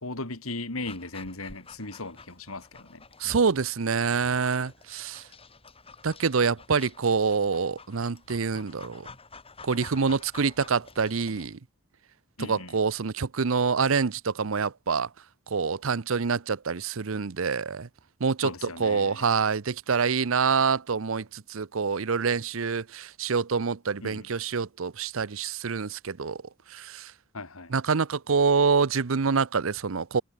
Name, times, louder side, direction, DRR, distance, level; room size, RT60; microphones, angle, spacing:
voice 1, 0.0-3.0 12.4-12.8 18.4-19.2 24.0-24.3 27.3-27.7, left 2 dB, 85° left, 4.0 m, -37 dB
Dog, 0.8-11.6, left 4 dB, 25° left, 7.2 m, -50 dB
voice 2, 3.2-5.2 6.0-9.1 9.6-11.6 12.4-15.1 15.5-17.9 18.2-26.4 26.7-27.1 27.7-30.2, right 5 dB, 70° right, 0.7 m, -26 dB
head